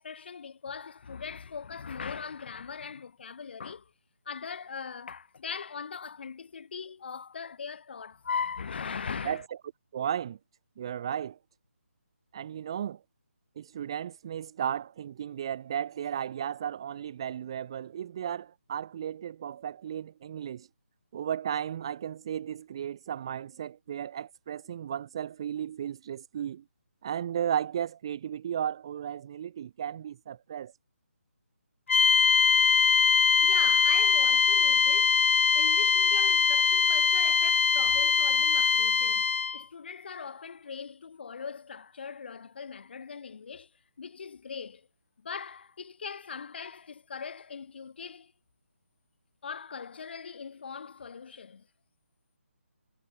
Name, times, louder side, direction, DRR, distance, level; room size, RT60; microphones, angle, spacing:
voice 1, 0.0-3.9 4.2-9.4 33.4-43.7 44.0-44.9 45.2-48.3 49.4-51.7, left 6 dB, 50° left, 3.3 m, -40 dB
voice 2, 9.9-10.4 10.8-11.4 12.3-13.0 13.6-20.7 21.1-26.6 27.0-30.7, right 9 dB, 20° right, 0.3 m, -34 dB
sound 1, 31.9-39.6, left 5 dB, 65° left, 0.4 m, -22 dB
hypercardioid pair, 165°, 7 cm